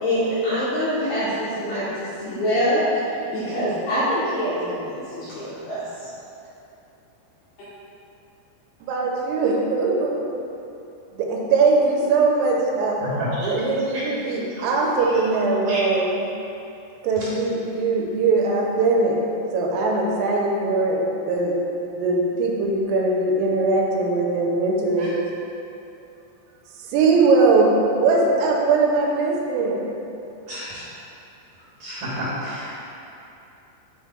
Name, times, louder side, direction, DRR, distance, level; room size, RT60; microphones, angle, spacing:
voice 1, 0.0-6.1, equal, 80° left, -11 dB, 2.4 m, -25 dB
voice 2, 8.8-10.3 11.1-13.0 13.4-16.2 17.0-19.2 19.5-21.6 22.0-25.2 26.9-27.7 28.0-30.0, right 3 dB, 90° right, -2 dB, 3.3 m, -21 dB
voice 3, 13.0-13.5 14.3-14.4 15.0-15.2 15.7-15.8 25.0-25.1 30.5-30.8 31.8-32.7, equal, 70° right, -9 dB, 2.3 m, -30 dB
10.0 x 4.5 x 2.2 m, 2.8 s
omnidirectional pair, 5.9 m